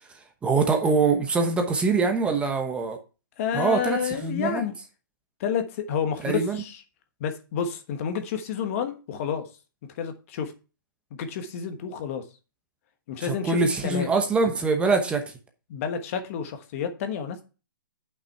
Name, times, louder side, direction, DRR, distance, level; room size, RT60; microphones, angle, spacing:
voice 1, 0.1-3.0 3.5-4.6 6.2-6.6 13.2-15.2, right 4 dB, 10° right, 0.9 m, -24 dB
voice 2, 3.4-4.7 5.4-6.8 7.2-9.4 10.0-10.5 11.1-12.2 13.1-13.6 13.8-14.1 15.7-17.4, left 7 dB, 40° left, 1.2 m, -29 dB
8.3 x 5.9 x 4.5 m
hypercardioid pair, 150°, 12 cm